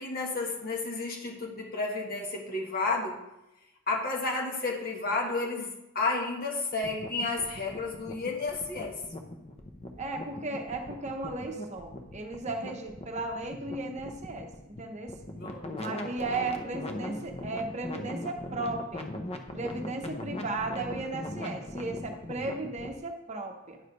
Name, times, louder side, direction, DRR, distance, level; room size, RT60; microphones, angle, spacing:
voice 1, 0.0-3.2 3.9-9.0 15.4-15.7, left 3 dB, 45° left, 0 dB, 1.6 m, -31 dB
sound 1, 6.7-23.0, left 1 dB, 30° left, 0.8 m, -40 dB
voice 2, 10.0-15.1 15.7-19.1 19.5-23.8, right 2 dB, 35° right, 4 dB, 0.8 m, -35 dB
9.4 x 4.9 x 5.4 m, 0.91 s
head